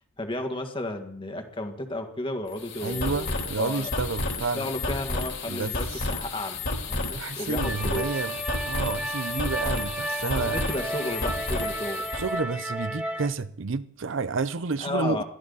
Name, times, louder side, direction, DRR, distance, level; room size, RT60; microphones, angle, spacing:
voice 1, 0.2-3.3 3.6-3.9 4.5-8.1 10.3-12.0 14.8-15.2, left 1 dB, 25° left, 1.8 m, -33 dB
sound 1, 2.5-12.3, left 2 dB, 55° left, 3.2 m, -31 dB
voice 2, 2.8-4.7 5.5-6.1 7.1-8.4 8.7-10.6 12.1-15.2, right 4 dB, 60° right, 0.6 m, -30 dB
sound 2, 7.6-13.3, right 1 dB, 5° right, 1.6 m, -33 dB
22.0 x 14.0 x 4.1 m
head